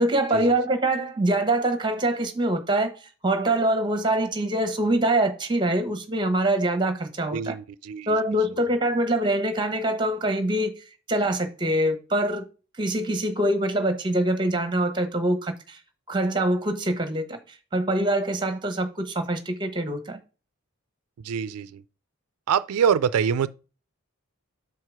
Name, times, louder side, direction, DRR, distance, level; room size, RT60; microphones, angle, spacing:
voice 1, 0.0-7.6 8.1-12.5 12.8-15.8 16.1-20.2, right 1 dB, 20° right, 1.0 m, -24 dB
voice 2, 7.3-8.1 21.2-21.8 22.5-23.5, right 7 dB, 85° right, 0.4 m, -24 dB
6.2 x 4.7 x 4.7 m
head